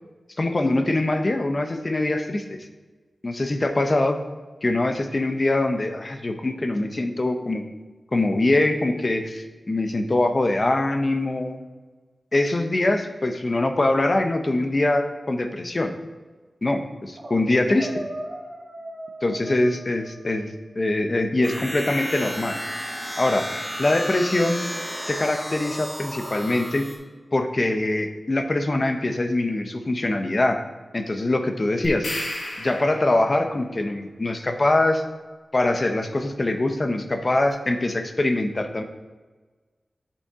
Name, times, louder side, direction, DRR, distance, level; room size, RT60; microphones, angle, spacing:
voice 1, 0.4-2.4 3.2-4.2 4.6-7.6 8.1-11.6 12.3-15.9 16.6-18.0 19.2-20.5 20.8-22.6 23.2-23.5 23.8-24.6 25.1-26.9 27.3-30.6 30.9-32.1 32.6-35.0 35.5-38.8, left 2 dB, 35° left, 6 dB, 0.7 m, -23 dB
sound 1, 17.2-17.4 17.7-20.5, right 1 dB, 70° right, 2.3 m, -37 dB
sound 2, 21.4-26.9, equal, 20° left, 1.5 m, -33 dB
sound 3, 31.8-33.4, left 1 dB, 85° left, 1.7 m, -33 dB
8.3 x 5.6 x 3.6 m, 1.3 s
wide cardioid pair, 105°, 0 cm